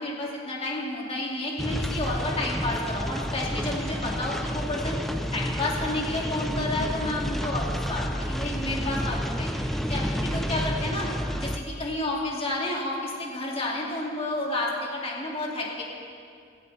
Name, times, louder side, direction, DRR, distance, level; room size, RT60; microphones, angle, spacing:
voice 1, 0.0-5.0 5.3-11.1 11.4-15.9, left 2 dB, 30° left, -3 dB, 2.8 m, -31 dB
sound 1, 1.6-11.6, equal, ahead, 0.7 m, -30 dB
18.0 x 16.0 x 4.3 m, 2.3 s
head